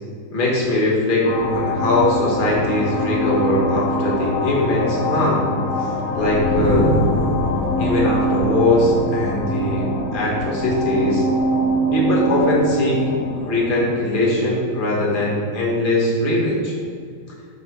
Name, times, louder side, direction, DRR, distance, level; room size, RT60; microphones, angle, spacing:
voice 1, 0.3-5.5 5.8-5.9 6.1-6.9 7.8-11.2 11.9-13.1 13.4-16.7, left 2 dB, 30° left, -4 dB, 1.0 m, -20 dB
sound 1, 1.2-15.4, equal, 65° left, 0.9 m, -23 dB
6.6 x 3.3 x 4.5 m, 2.1 s
omnidirectional pair, 2.2 m